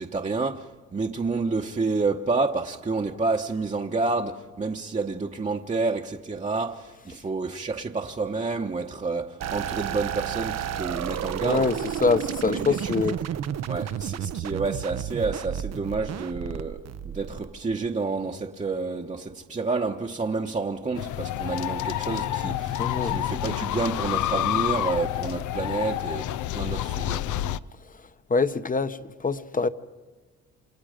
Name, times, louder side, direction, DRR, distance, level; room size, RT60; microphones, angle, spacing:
voice 1, 0.0-11.7 12.4-13.3 13.7-27.3, right 3 dB, 25° right, 1.1 m, -29 dB
sound 1, 9.4-17.9, right 9 dB, 60° right, 0.8 m, -32 dB
voice 2, 11.4-11.7 12.0-13.2 22.8-23.2 28.3-29.7, left 4 dB, 25° left, 1.0 m, -24 dB
sound 2, 20.9-27.6, left 13 dB, 75° left, 0.7 m, -28 dB
28.5 x 26.5 x 5.1 m
cardioid pair, 90°, 30 cm